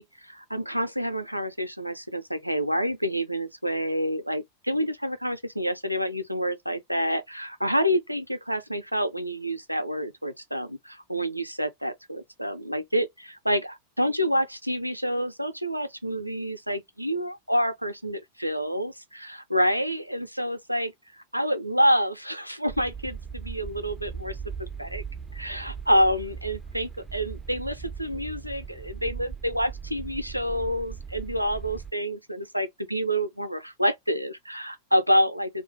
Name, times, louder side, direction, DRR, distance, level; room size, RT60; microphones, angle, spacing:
voice 1, 0.0-20.9 21.3-25.0 25.3-35.6, equal, 90° right, 0.4 m, -28 dB
sound 1, 22.7-31.9, right 6 dB, 5° right, 0.4 m, -39 dB
2.3 x 2.1 x 3.8 m
figure-of-eight pair, 90°, 0 cm